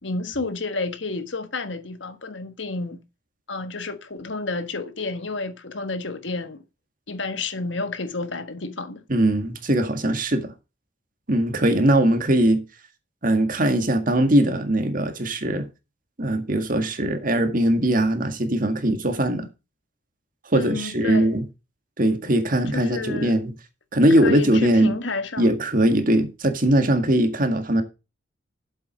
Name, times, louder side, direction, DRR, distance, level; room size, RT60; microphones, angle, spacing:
voice 1, 0.0-3.0 3.5-6.6 7.1-9.0 20.5-21.3 22.7-23.4 24.1-25.5, left 3 dB, 75° left, 1.4 m, -30 dB
voice 2, 9.1-10.5 11.3-12.6 13.2-15.7 16.2-19.5 20.5-21.4 22.0-23.5 23.9-24.9 25.4-27.8, right 1 dB, 45° right, 1.8 m, -20 dB
7.7 x 7.6 x 5.2 m
head